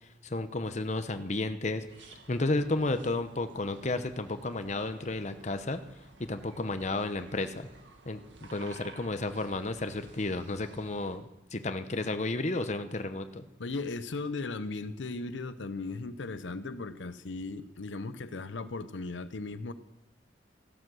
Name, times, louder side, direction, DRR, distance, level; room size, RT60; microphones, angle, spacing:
voice 1, 0.2-1.9 2.3-5.8 6.2-7.7 8.1-13.5, left 2 dB, 40° left, 9 dB, 0.8 m, -32 dB
sound 1, 1.9-11.2, right 3 dB, 85° right, 1.9 m, -54 dB
voice 2, 13.6-19.7, left 3 dB, 85° left, 12 dB, 0.7 m, -37 dB
15.0 x 12.5 x 6.2 m, 0.93 s
head